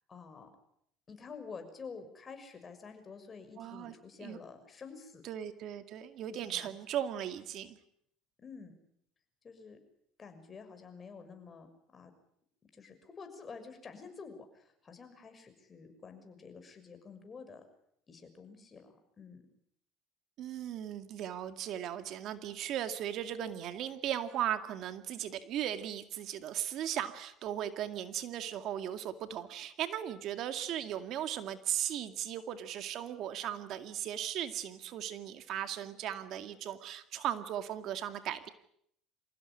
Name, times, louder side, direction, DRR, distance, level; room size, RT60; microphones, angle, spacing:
voice 1, 0.1-0.5 1.1-5.2 6.3-6.7 8.4-8.7 9.4-9.8 10.2-12.1 12.7-17.6 18.1-19.4, left 5 dB, 30° left, 7 dB, 6.4 m, -49 dB
voice 2, 3.6-3.9 4.2-4.4 5.2-7.8 20.4-38.5, right 11 dB, 55° right, 9 dB, 2.2 m, -37 dB
27.0 x 16.5 x 9.9 m, 0.72 s
supercardioid pair, 110°, 0 cm